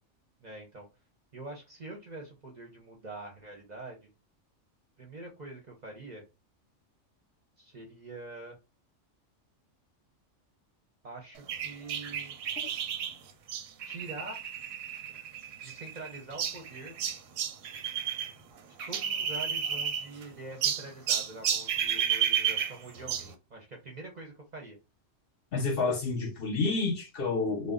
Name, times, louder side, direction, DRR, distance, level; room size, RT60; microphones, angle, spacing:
voice 1, 0.4-0.9 1.3-4.1 5.0-6.2 7.6-8.6 11.0-12.4 13.9-14.5 15.1-15.3 15.6-16.9 18.9-24.8, right 2 dB, 45° right, 0.6 m, -45 dB
sound 1, 11.5-18.3 18.6-20.2 20.6-23.3, right 8 dB, 90° right, 0.9 m, -32 dB
voice 2, 25.5-27.7, left 3 dB, 60° left, 0.7 m, -29 dB
2.3 x 2.0 x 3.5 m
omnidirectional pair, 1.3 m